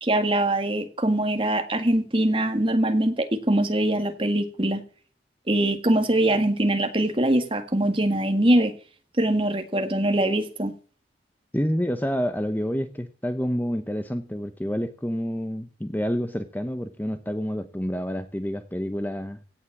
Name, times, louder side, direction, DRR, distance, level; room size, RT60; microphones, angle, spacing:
voice 1, 0.0-4.8 5.5-8.7 9.2-10.7, right 1 dB, 30° right, 7 dB, 1.9 m, -23 dB
voice 2, 11.5-19.5, equal, 10° left, 9 dB, 0.8 m, -28 dB
17.0 x 7.3 x 7.2 m, 0.42 s
head